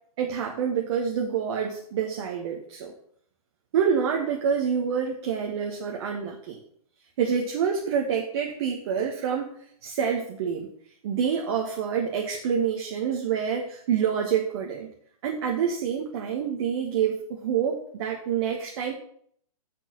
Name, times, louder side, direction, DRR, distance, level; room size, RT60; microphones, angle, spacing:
voice 1, 0.2-2.9 3.7-6.6 7.2-9.5 9.8-10.7 11.0-14.9 15.2-18.9, right 7 dB, 45° right, 0 dB, 1.5 m, -27 dB
6.8 x 6.1 x 6.8 m, 0.62 s
figure-of-eight pair, 120°, 19 cm